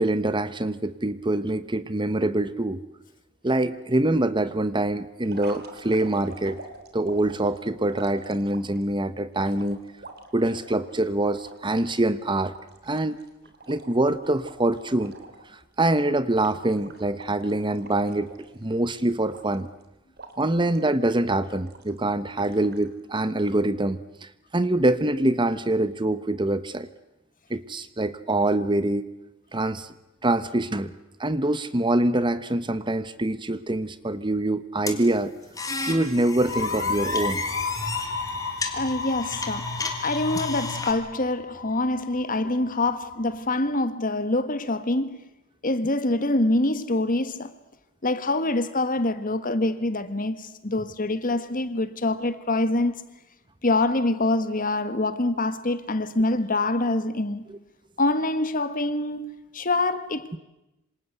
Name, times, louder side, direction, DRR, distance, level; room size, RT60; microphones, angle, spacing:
voice 1, 0.0-2.8 3.4-6.6 6.9-9.8 10.3-12.5 12.8-13.2 13.7-15.1 15.5-18.3 18.6-19.7 20.4-26.9 27.5-29.0 29.5-29.9 30.2-30.9 31.2-35.3 35.9-37.4, right 1 dB, 25° right, 1.1 m, -25 dB
sound 1, 5.2-8.8 9.3-11.9 12.2-12.3 12.5-15.5 15.7-16.0 16.3-18.8 19.3-19.8 20.2-20.9 21.4-22.0 22.4-22.9, right 3 dB, 50° right, 3.6 m, -45 dB
sound 2, 34.9-40.9, left 3 dB, 15° left, 3.2 m, -32 dB
sound 3, 36.2-43.7, left 4 dB, 80° left, 2.2 m, -34 dB
voice 2, 38.7-45.2 45.6-47.5 48.0-53.0 53.6-57.5 58.0-60.4, left 2 dB, 40° left, 1.7 m, -25 dB
27.0 x 26.5 x 8.2 m
head